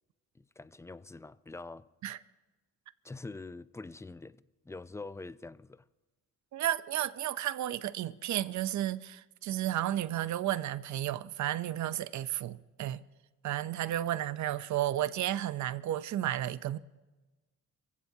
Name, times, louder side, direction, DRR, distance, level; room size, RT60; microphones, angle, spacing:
voice 1, 0.3-1.9 3.0-5.8, left 3 dB, 10° left, 0.4 m, -45 dB
voice 2, 6.5-13.0 13.4-16.8, right 12 dB, 70° right, 0.8 m, -32 dB
28.0 x 16.0 x 2.8 m
cardioid pair, 90°, 30 cm